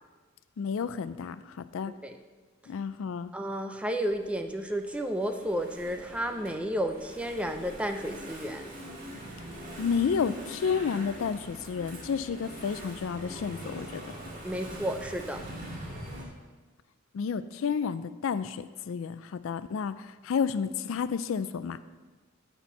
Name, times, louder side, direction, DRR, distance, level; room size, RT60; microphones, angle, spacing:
voice 1, 0.6-1.9 2.7-3.3 9.8-14.0 17.1-20.0 20.2-21.8, left 6 dB, 70° left, 14 dB, 0.4 m, -31 dB
voice 2, 1.9-2.2 3.3-8.7 14.4-15.4, equal, 5° right, 6 dB, 0.5 m, -32 dB
Engine / Mechanisms, 4.1-16.2, right 1 dB, 40° right, 2.0 m, -43 dB
9.6 x 4.4 x 7.1 m, 1.3 s
head